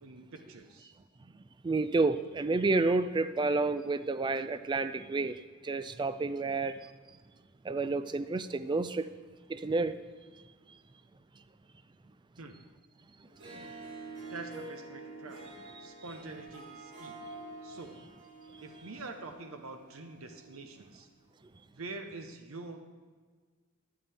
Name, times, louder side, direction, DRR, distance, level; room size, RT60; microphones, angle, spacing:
voice 1, 0.0-0.9 12.4-12.5 14.3-15.5 15.8-17.2 17.6-18.0 18.6-21.1 21.7-22.8, right 3 dB, 80° right, 0.8 m, -45 dB
voice 2, 1.6-6.8 7.6-9.1 9.5-10.0 13.5-13.6, right 3 dB, 20° right, 0.3 m, -30 dB
Harp, 13.3-20.7, right 2 dB, 55° right, 2.1 m, -47 dB
13.0 x 9.6 x 3.4 m
head